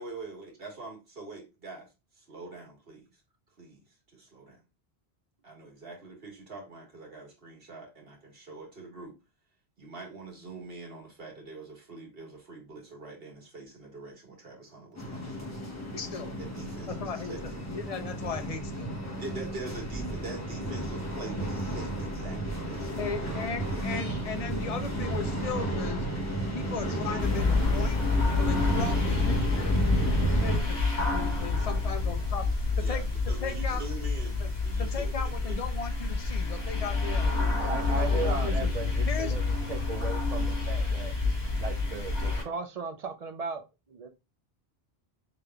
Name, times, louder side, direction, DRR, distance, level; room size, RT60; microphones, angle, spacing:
voice 1, 0.0-1.9 2.1-3.1 3.6-3.8 4.1-4.6 5.4-9.1 9.8-15.5 16.4-17.4 19.2-23.1 23.7-23.8 32.8-35.6, right 3 dB, 65° right, 1.7 m, -44 dB
sound 1, 15.0-30.6, right 1 dB, 15° left, 1.0 m, -32 dB
voice 2, 15.9-16.3 16.9-17.4 17.7-19.0 23.0-26.1 26.5-28.0 28.4-29.7 30.4-32.4 32.8-33.0 33.4-33.8 34.4-34.5 34.8-37.5 38.0-38.7 39.1-39.4, left 5 dB, 45° left, 0.5 m, -37 dB
sound 2, 27.2-42.4, left 3 dB, 70° left, 2.1 m, -28 dB
voice 3, 37.6-39.4 39.7-41.1 41.5-43.6 43.9-44.1, right 4 dB, 45° right, 0.6 m, -36 dB
5.0 x 3.4 x 2.2 m
omnidirectional pair, 1.1 m